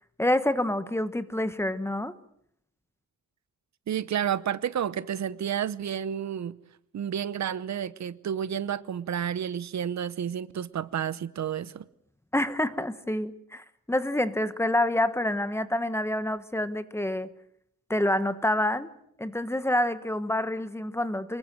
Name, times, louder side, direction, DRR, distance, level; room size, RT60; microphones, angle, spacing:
voice 1, 0.2-2.1 12.3-17.3 17.9-18.9 19.2-21.4, left 1 dB, 10° left, 12 dB, 1.1 m, -27 dB
voice 2, 3.9-6.6 6.9-11.8, right 9 dB, 65° right, 16 dB, 0.9 m, -30 dB
26.0 x 21.5 x 7.6 m, 0.73 s
wide cardioid pair, 150°, 31 cm